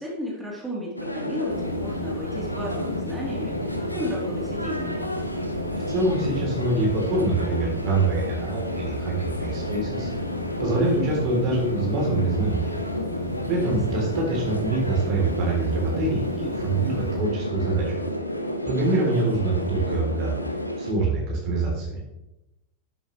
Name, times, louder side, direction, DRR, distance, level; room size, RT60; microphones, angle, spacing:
voice 1, 0.0-4.9 13.6-13.8, left 1 dB, 10° right, -5 dB, 3.4 m, -33 dB
sound 1, 1.0-20.9, left 1 dB, 85° left, 0.9 m, -31 dB
sound 2, 1.5-17.2, left 2 dB, 20° left, 3.2 m, -36 dB
voice 2, 5.9-10.1 10.6-12.7 13.5-18.0 18.7-20.4 20.8-21.9, right 2 dB, 40° right, -1 dB, 3.4 m, -25 dB
12.0 x 9.1 x 3.3 m, 0.95 s
figure-of-eight pair, 90°, 0 cm